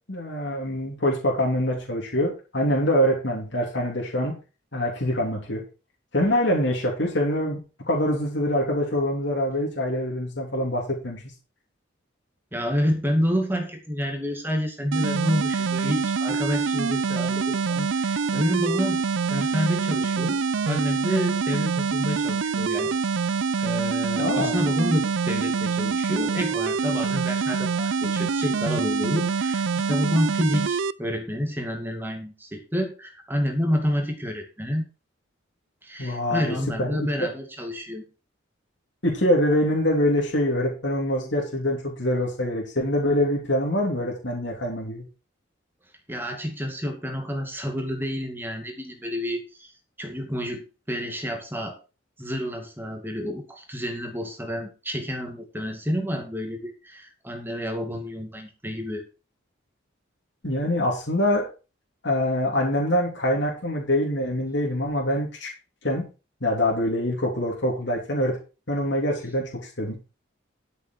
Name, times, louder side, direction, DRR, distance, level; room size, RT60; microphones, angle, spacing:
voice 1, 0.1-4.4 4.7-5.6 6.1-7.6 7.9-11.2 24.2-24.6 36.0-37.3 39.0-45.0 60.4-61.5 62.0-65.5 65.8-66.1 66.4-68.4 68.7-69.9, left 1 dB, 60° left, -2 dB, 3.4 m, -24 dB
voice 2, 12.5-19.0 19.3-20.4 20.7-22.9 23.2-23.3 23.6-34.9 35.8-38.0 46.1-49.7 50.0-51.8 52.2-59.0, equal, 10° right, 3 dB, 2.2 m, -29 dB
sound 1, 14.9-30.9, right 5 dB, 70° right, 0.5 m, -25 dB
12.5 x 7.0 x 4.6 m, 0.32 s
head